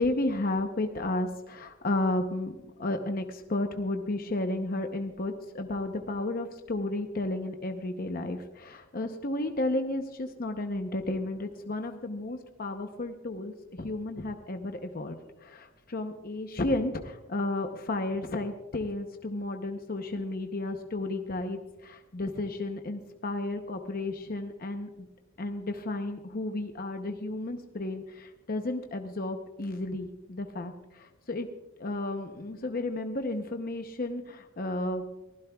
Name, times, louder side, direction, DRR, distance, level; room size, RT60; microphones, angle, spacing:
voice 1, 0.0-2.5 2.8-25.1 25.4-31.5 31.8-35.1, left 2 dB, 40° left, 5 dB, 0.7 m, -33 dB
23.0 x 15.5 x 2.3 m, 1.0 s
head